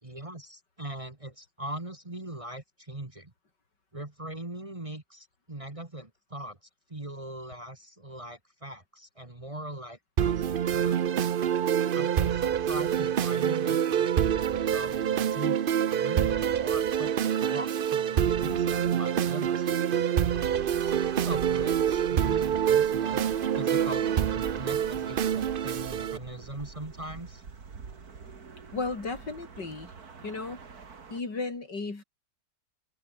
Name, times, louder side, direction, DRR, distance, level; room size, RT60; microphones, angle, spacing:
voice 1, 0.0-3.3 3.9-6.6 6.9-11.3 11.9-14.2 14.7-15.6 15.9-20.1 20.8-23.2 23.5-24.1 24.3-27.4, right 1 dB, 20° right, 2.0 m, -41 dB
sound 1, 10.2-26.2, right 9 dB, 90° right, 0.4 m, -26 dB
sound 2, 20.3-31.2, right 5 dB, 60° right, 2.7 m, -45 dB
voice 2, 28.7-29.9 30.2-30.6 31.1-32.0, left 3 dB, 80° left, 4.7 m, -34 dB
omnidirectional pair, 1.8 m